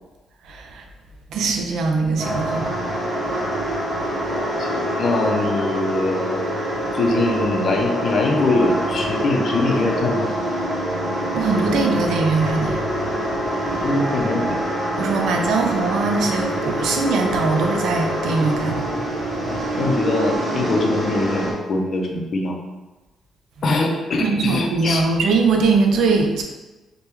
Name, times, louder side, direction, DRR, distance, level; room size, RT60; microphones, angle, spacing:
voice 1, 0.5-0.8 1.3-2.7 11.3-12.8 15.0-18.9 24.2-26.4, right 4 dB, 80° right, 3 dB, 0.4 m, -21 dB
sound 1, 2.2-21.5, right 1 dB, 25° right, 1.1 m, -25 dB
voice 2, 4.3-6.5 6.9-10.3 13.8-14.6 19.8-22.6 23.6-25.0, left 2 dB, 50° left, 1 dB, 0.5 m, -22 dB
3.4 x 2.2 x 3.0 m, 1.1 s
cardioid pair, 115°, 0 cm